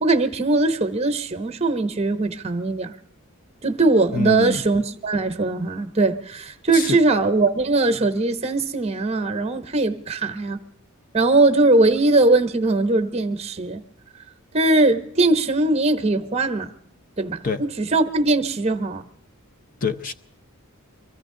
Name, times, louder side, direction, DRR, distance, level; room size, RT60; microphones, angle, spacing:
voice 1, 0.0-2.9 3.6-10.6 11.1-13.8 14.5-16.7 17.2-19.0, right 2 dB, 30° right, 0.9 m, -20 dB
voice 2, 4.1-4.6 6.7-7.0 17.4-17.6 19.8-20.1, left 5 dB, 40° left, 0.6 m, -25 dB
24.0 x 14.5 x 3.7 m
head